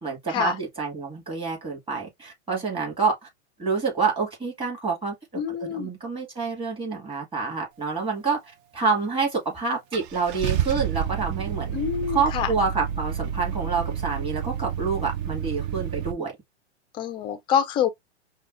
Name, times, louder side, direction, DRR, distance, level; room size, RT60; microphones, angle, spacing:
voice 1, 0.0-3.2 3.6-8.4 8.7-11.8 12.1-16.3, right 4 dB, 15° right, 2.0 m, -27 dB
voice 2, 5.3-5.9 11.7-12.5 17.0-17.9, left 9 dB, 15° left, 0.3 m, -26 dB
Car / Engine starting, 9.2-9.3 9.9-16.1, right 9 dB, 40° right, 0.5 m, -29 dB
5.1 x 2.2 x 2.5 m
hypercardioid pair, 125°, 34 cm